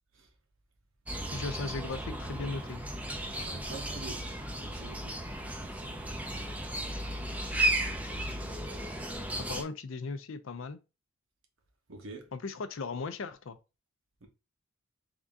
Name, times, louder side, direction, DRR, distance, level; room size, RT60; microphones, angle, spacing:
sound 1, 1.1-9.6, right 1 dB, 5° right, 0.4 m, -35 dB
voice 1, 1.3-2.8 9.5-10.8 12.3-13.6, left 4 dB, 60° left, 0.4 m, -37 dB
voice 2, 3.3-4.2 4.6-5.2 5.8-6.5 8.3-8.5 11.9-12.2 14.2-14.3, right 3 dB, 65° right, 0.9 m, -46 dB
3.6 x 2.6 x 3.5 m
head